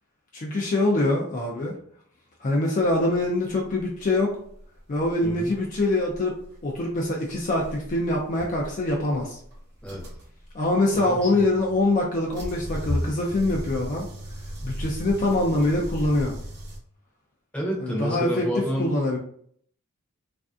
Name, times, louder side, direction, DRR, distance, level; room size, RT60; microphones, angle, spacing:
voice 1, 0.3-1.7 2.4-4.4 4.9-6.4 6.6-9.4 10.5-14.1 14.6-16.3 17.8-19.2, left 2 dB, 35° left, -1 dB, 0.4 m, -24 dB
sound 1, 2.9-16.8, equal, 50° right, 0.8 m, -36 dB
voice 2, 10.9-11.4 17.5-19.0, equal, 5° left, -3 dB, 0.7 m, -30 dB
3.2 x 2.5 x 2.3 m, 0.62 s
head